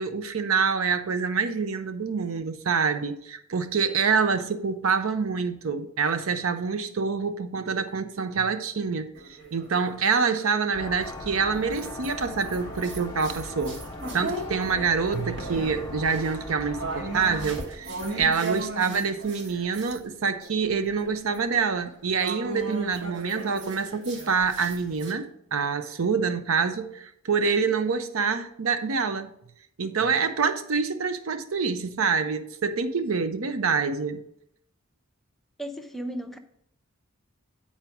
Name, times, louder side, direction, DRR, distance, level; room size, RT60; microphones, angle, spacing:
voice 1, 0.0-9.1 9.5-13.8 14.1-29.3 29.8-34.2, right 5 dB, 85° right, 0.6 m, -26 dB
sound 1, 9.2-10.5 11.1-20.0 20.4-25.1, right 2 dB, 55° right, 1.3 m, -38 dB
sound 2, 10.7-17.6, left 2 dB, 20° left, 1.0 m, -39 dB
voice 2, 35.6-36.4, right 1 dB, ahead, 0.6 m, -34 dB
8.4 x 4.3 x 5.8 m
head